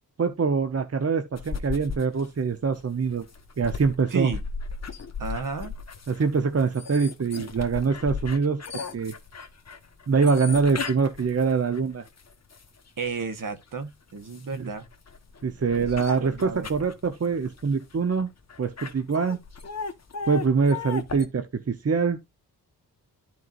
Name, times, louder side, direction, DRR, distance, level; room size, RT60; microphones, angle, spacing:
voice 1, 0.2-3.2 3.6-4.3 6.1-8.6 8.9-9.1 10.1-12.0 14.5-14.7 15.4-18.3 18.6-19.4 20.3-22.2, right 5 dB, 40° right, 0.9 m, -24 dB
sound 1, 1.3-13.1 13.6-21.2, left 5 dB, 40° left, 1.4 m, -37 dB
voice 2, 5.2-5.7 13.0-14.9 15.7-16.9, right 5 dB, 55° right, 1.5 m, -33 dB
12.5 x 4.7 x 2.6 m
cardioid pair, 65°, 38 cm